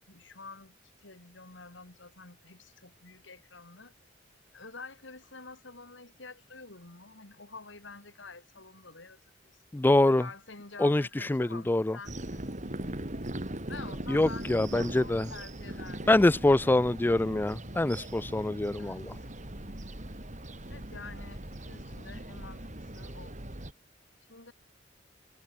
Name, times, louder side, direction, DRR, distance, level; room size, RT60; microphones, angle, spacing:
voice 1, 0.1-3.9 4.5-9.6 10.1-12.8 13.7-16.1 18.8-19.3 20.7-23.4 24.3-24.5, left 3 dB, 75° left, 3.9 m, -48 dB
voice 2, 9.7-10.3 10.8-12.0 14.1-15.3 16.1-19.2, left 2 dB, 10° left, 0.3 m, -25 dB
sound 1, 12.0-23.7, right 1 dB, 40° right, 3.7 m, -40 dB
head